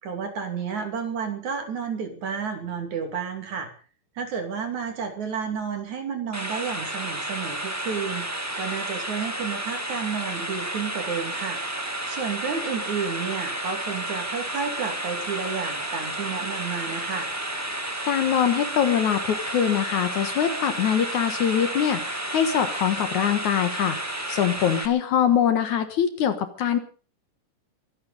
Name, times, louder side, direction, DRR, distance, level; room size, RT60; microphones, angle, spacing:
voice 1, 0.0-3.7 4.2-11.6 12.1-17.3, right 6 dB, 60° right, 6 dB, 4.0 m, -31 dB
sound 1, 6.3-24.9, right 1 dB, 20° right, 0.4 m, -31 dB
voice 2, 18.1-26.8, left 9 dB, 65° left, 9 dB, 2.7 m, -23 dB
24.0 x 9.9 x 5.3 m, 0.39 s
omnidirectional pair, 3.9 m